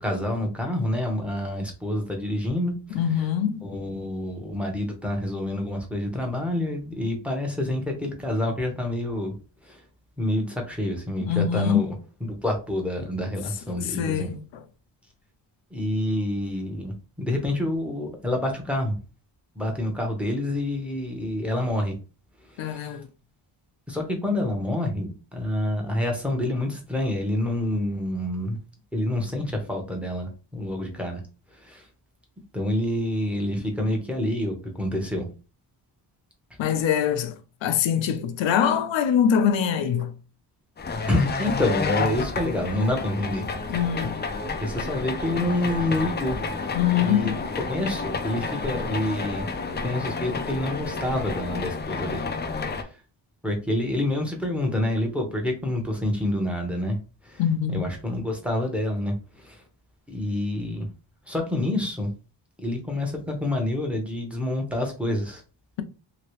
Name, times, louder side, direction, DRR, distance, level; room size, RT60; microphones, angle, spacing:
voice 1, 0.0-2.7 3.6-9.3 9.6-9.8 10.2-11.9 12.2-14.3 15.7-19.0 19.6-22.0 22.5-22.9 23.9-28.6 28.9-31.2 31.5-31.9 32.5-35.3 41.1-43.8 44.6-46.4 47.0-49.5 49.8-52.2 52.7-52.9 53.4-57.0 57.2-57.4 57.7-59.6 60.1-60.9 61.3-62.1 62.6-65.4, left 1 dB, 5° right, 0.8 m, -27 dB
voice 2, 2.9-3.7 11.3-11.8 13.8-14.6 22.6-23.1 36.6-40.1 43.7-44.3 46.7-47.4 57.4-57.8, left 8 dB, 80° left, 0.6 m, -24 dB
sound 1, 40.8-52.8, left 4 dB, 25° left, 0.3 m, -30 dB
2.9 x 2.9 x 3.0 m
wide cardioid pair, 135°, 45 cm